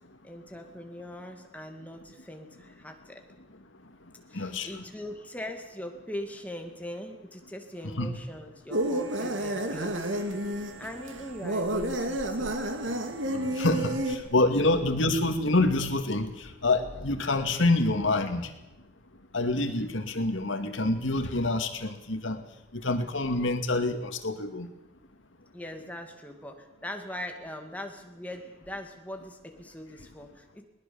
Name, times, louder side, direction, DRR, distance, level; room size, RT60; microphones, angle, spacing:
voice 1, 0.2-3.2 4.3-12.6 25.5-30.6, left 1 dB, 10° left, 4 dB, 2.3 m, -41 dB
voice 2, 4.3-4.8 8.0-8.1 13.3-16.3 16.6-18.5 19.3-22.4 22.8-24.7, left 2 dB, 85° left, 7 dB, 2.3 m, -26 dB
sound 1, 8.7-14.2, right 1 dB, 85° right, 2.4 m, -30 dB
21.5 x 20.0 x 7.1 m, 0.94 s
head